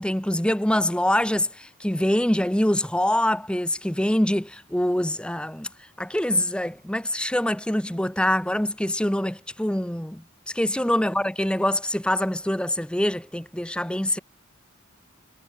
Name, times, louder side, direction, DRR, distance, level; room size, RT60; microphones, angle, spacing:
voice 1, 0.0-5.7 6.0-14.2, left 1 dB, 5° left, 1.0 m, -24 dB
head